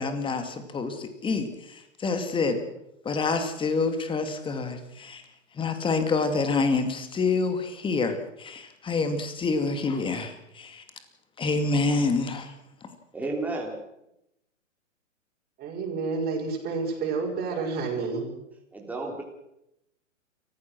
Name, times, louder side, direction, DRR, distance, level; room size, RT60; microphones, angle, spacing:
voice 1, 0.0-2.6 3.0-5.2 5.5-10.8 11.4-12.5, left 4 dB, 15° left, 8 dB, 2.5 m, -27 dB
voice 2, 13.1-13.8 18.7-19.2, right 2 dB, 5° right, -1 dB, 3.8 m, -32 dB
voice 3, 15.6-18.3, right 4 dB, 25° right, 0 dB, 6.7 m, -29 dB
29.0 x 15.5 x 6.2 m, 0.85 s
hypercardioid pair, 130°, 38 cm